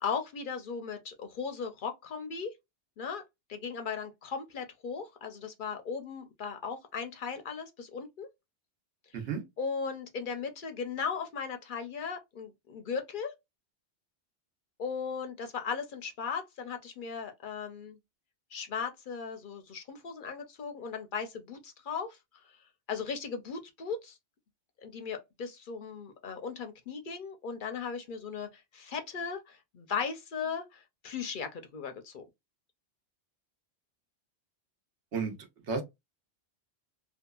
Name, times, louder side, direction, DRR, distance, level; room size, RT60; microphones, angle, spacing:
voice 1, 0.0-2.5 3.0-3.2 3.5-8.3 9.1-9.2 9.6-13.3 14.8-18.0 18.5-22.5 22.9-24.2 24.8-32.3, left 6 dB, 60° left, 0.6 m, -37 dB
voice 2, 9.1-9.4 35.1-35.3 35.7-35.8, right 5 dB, 80° right, 1.1 m, -32 dB
2.7 x 2.3 x 2.2 m
omnidirectional pair, 1.2 m